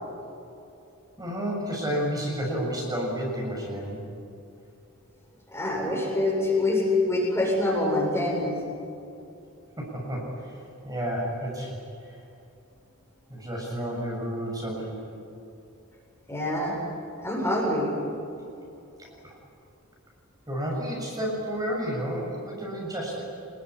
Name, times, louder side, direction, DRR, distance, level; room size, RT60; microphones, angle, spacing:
voice 1, 1.2-4.0 9.8-12.2 13.3-15.0 19.0-19.4 20.5-23.2, equal, 20° right, -2 dB, 7.1 m, -31 dB
voice 2, 5.5-8.5 16.3-16.7 17.2-17.9, left 2 dB, 10° left, -2 dB, 7.5 m, -25 dB
27.0 x 21.5 x 10.0 m, 2.7 s
head